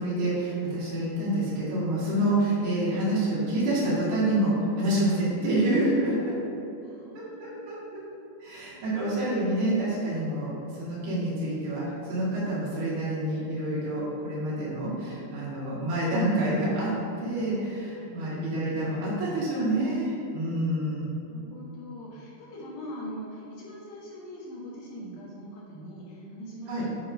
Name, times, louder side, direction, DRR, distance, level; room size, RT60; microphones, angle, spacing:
voice 1, 0.0-6.3 7.1-8.0 8.4-16.9 17.2-21.1 26.7-26.8, right 1 dB, 70° right, -8 dB, 4.2 m, -27 dB
voice 2, 6.8-9.2 18.0-18.3 20.4-20.9 21.2-27.1, equal, 65° left, -7 dB, 2.0 m, -43 dB
11.0 x 3.7 x 5.3 m, 2.9 s
omnidirectional pair, 5.7 m